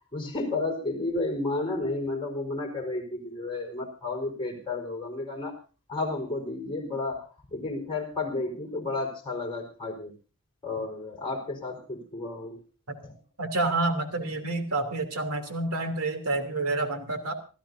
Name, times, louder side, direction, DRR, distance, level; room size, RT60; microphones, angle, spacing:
voice 1, 0.1-5.5 5.9-10.1 10.6-12.6 13.0-13.1, left 2 dB, 25° left, 1 dB, 4.6 m, -32 dB
voice 2, 13.4-17.3, right 2 dB, 75° right, 6 dB, 3.1 m, -28 dB
27.0 x 14.5 x 2.7 m, 0.35 s
head